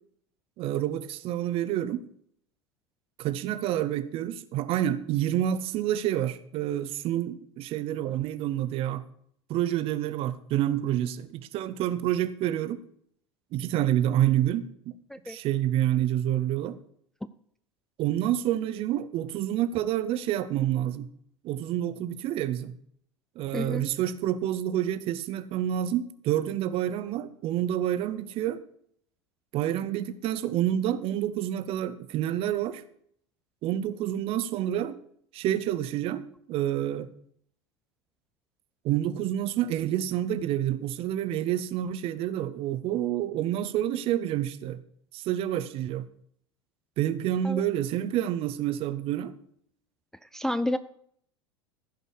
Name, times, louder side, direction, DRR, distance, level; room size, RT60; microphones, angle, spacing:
voice 1, 0.6-2.0 3.2-9.0 9.5-12.8 13.5-14.9 15.3-16.8 18.0-21.1 21.4-22.7 23.4-28.6 29.5-32.8 33.6-35.0 35.3-37.1 38.8-44.8 45.1-46.1 47.0-49.4, right 12 dB, 40° right, 13 dB, 0.9 m, -28 dB
voice 2, 23.5-23.9 47.4-47.6 50.3-50.8, left 1 dB, 5° left, 11 dB, 0.4 m, -30 dB
15.0 x 5.4 x 6.3 m, 0.66 s
figure-of-eight pair, 80°, 14 cm